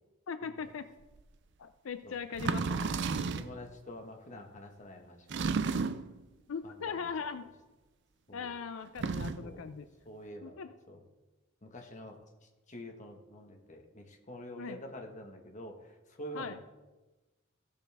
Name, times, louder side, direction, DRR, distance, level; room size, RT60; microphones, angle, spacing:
voice 1, 0.3-0.9 1.6-2.6 6.5-7.5 8.3-9.9 10.4-10.7 14.6-14.8 16.3-16.6, left 6 dB, 85° left, 10 dB, 0.5 m, -39 dB
sound 1, 1.2-1.3 2.3-3.6 5.3-6.2 8.9-9.5, right 4 dB, 60° right, 0.5 m, -32 dB
voice 2, 2.0-2.9 3.1-5.6 6.6-6.9 8.3-8.5 9.4-9.7 10.0-10.6 10.9-11.0 11.6-12.2 12.7-15.7 16.2-16.6, equal, 40° left, 2 dB, 1.4 m, -47 dB
15.5 x 7.0 x 3.5 m, 1.1 s
head